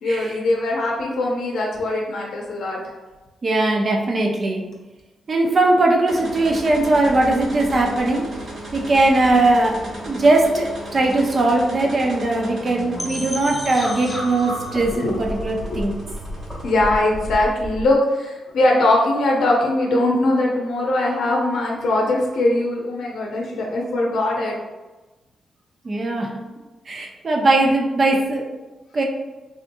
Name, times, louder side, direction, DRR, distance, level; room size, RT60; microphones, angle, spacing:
voice 1, 0.0-2.9 14.9-15.2 15.7-15.8 16.6-24.6, left 2 dB, 75° left, -2 dB, 0.6 m, -21 dB
voice 2, 3.4-4.7 5.3-15.9 25.8-26.4 26.9-28.5 28.9-29.0, right 2 dB, 40° right, 0 dB, 0.6 m, -20 dB
sound 1, 6.1-17.7, equal, 55° right, 1.3 m, -36 dB
sound 2, 13.0-17.9, left 1 dB, 15° left, 0.8 m, -32 dB
3.6 x 2.6 x 2.6 m, 1.1 s
cardioid pair, 110°, 0 cm